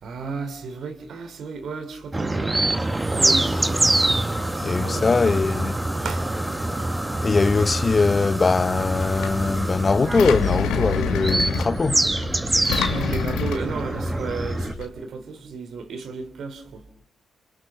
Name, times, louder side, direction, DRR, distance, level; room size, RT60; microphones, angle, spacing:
voice 1, 0.0-2.6 3.0-3.8 4.8-5.4 6.0-6.3 12.9-16.9, right 4 dB, 70° right, 3.5 m, -33 dB
sound 1, 2.1-14.7, right 2 dB, 25° right, 1.9 m, -25 dB
sound 2, 2.7-11.2, equal, ahead, 3.6 m, -36 dB
voice 2, 4.6-5.8 7.2-12.1, left 4 dB, 40° left, 1.1 m, -21 dB
Engine, 8.7-14.8, left 8 dB, 80° left, 1.8 m, -29 dB
29.5 x 27.0 x 6.9 m
hypercardioid pair, 45°, 0 cm